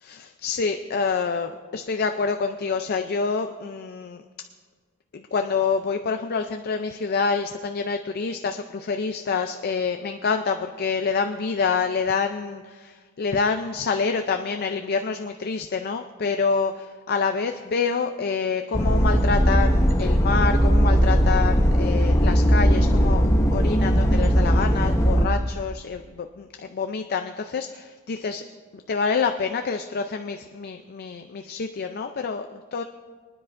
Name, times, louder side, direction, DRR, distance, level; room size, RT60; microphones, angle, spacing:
voice 1, 0.0-4.2 5.1-23.2 23.5-28.4 28.7-32.8, left 5 dB, 45° left, 6 dB, 0.4 m, -27 dB
sound 1, 18.7-25.3, equal, 15° left, 0.7 m, -19 dB
24.5 x 9.8 x 2.5 m, 1.5 s
head